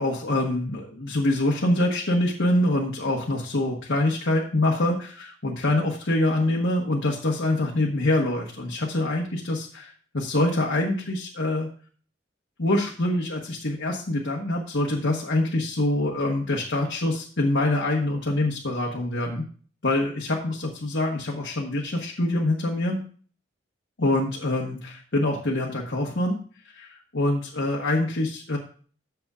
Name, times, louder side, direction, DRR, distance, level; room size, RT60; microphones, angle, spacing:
voice 1, 0.0-11.7 12.6-19.4 19.8-23.0 24.0-26.4 26.7-28.6, left 1 dB, 80° left, -2 dB, 1.3 m, -25 dB
13.5 x 7.0 x 2.5 m, 0.43 s
head